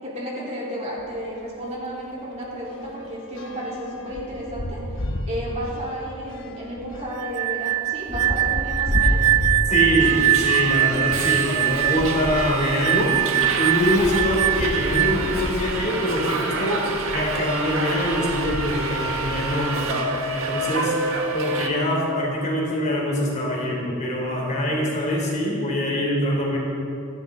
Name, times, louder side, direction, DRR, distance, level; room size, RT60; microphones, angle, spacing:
voice 1, 0.0-9.3, equal, 30° right, -6 dB, 4.0 m, -32 dB
sound 1, 1.0-1.2 1.5-1.6 2.0-11.5 12.2-13.5 14.2-14.3 14.6-14.7 16.3-16.5 17.1-17.3 17.8-19.0, left 1 dB, 60° left, 1.1 m, -31 dB
sound 2, 7.2-15.4, right 15 dB, 90° right, 0.3 m, -22 dB
voice 2, 9.7-13.1 13.6-16.8 17.1-19.9 20.3-20.9 21.3-26.6, equal, 35° left, -2 dB, 3.5 m, -24 dB
Subway metro underground, 10.0-21.7, right 2 dB, 65° right, 1.7 m, -28 dB
27.0 x 12.0 x 4.0 m, 2.7 s
head